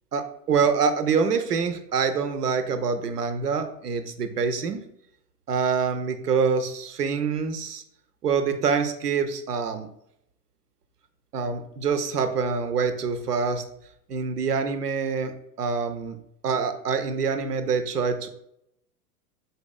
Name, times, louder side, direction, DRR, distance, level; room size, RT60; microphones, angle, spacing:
voice 1, 0.1-4.8 5.5-7.8 8.2-9.9 11.3-13.6 14.1-15.3 15.6-16.2 16.4-18.3, right 5 dB, 75° right, 8 dB, 0.7 m, -25 dB
5.4 x 4.0 x 2.2 m, 0.76 s
figure-of-eight pair, 90°, 47 cm